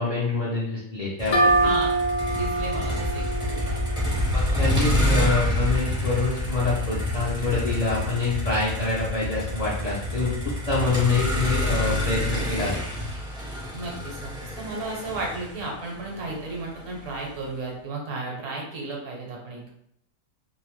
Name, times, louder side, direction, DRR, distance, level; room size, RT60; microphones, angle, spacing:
voice 1, 0.0-1.5 4.3-12.7, left 3 dB, 75° left, -7 dB, 0.3 m, -26 dB
Motor vehicle (road), 1.2-17.3, left 1 dB, 5° right, 0.4 m, -28 dB
sound 1, 1.3-4.9, right 2 dB, 55° left, 0.7 m, -25 dB
voice 2, 1.6-1.9 2.3-3.8 4.4-5.1 13.7-19.7, right 2 dB, 65° right, -1 dB, 1.1 m, -34 dB
2.6 x 2.0 x 3.0 m, 0.71 s
omnidirectional pair, 1.5 m